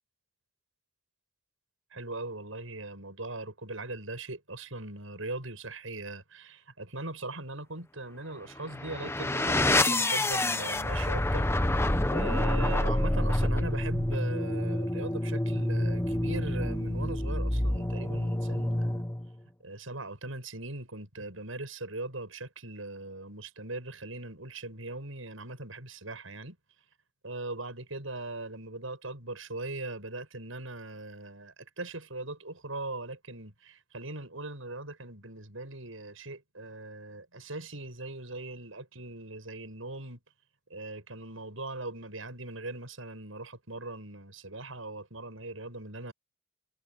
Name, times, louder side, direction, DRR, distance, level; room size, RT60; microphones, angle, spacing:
voice 1, 1.9-19.0 19.6-26.6 27.2-40.2 40.7-46.1, right 2 dB, 80° right, 7.9 m, -40 dB
sound 1, 8.6-19.3, left 1 dB, 15° left, 1.1 m, -28 dB
head